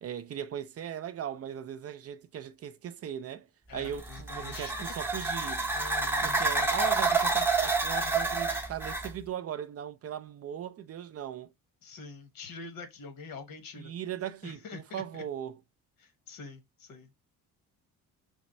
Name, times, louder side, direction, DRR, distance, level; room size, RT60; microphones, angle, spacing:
voice 1, 0.0-3.5 3.7-5.7 6.2-11.5 13.8-15.6, right 9 dB, 45° right, 0.4 m, -38 dB
voice 2, 3.7-4.9 5.7-6.7 11.8-13.9 14.4-15.2 16.0-17.1, left 4 dB, 70° left, 1.2 m, -45 dB
sound 1, 3.9-9.1, right 3 dB, 5° right, 0.6 m, -29 dB
3.5 x 3.1 x 4.2 m
cardioid pair, 120°, 35 cm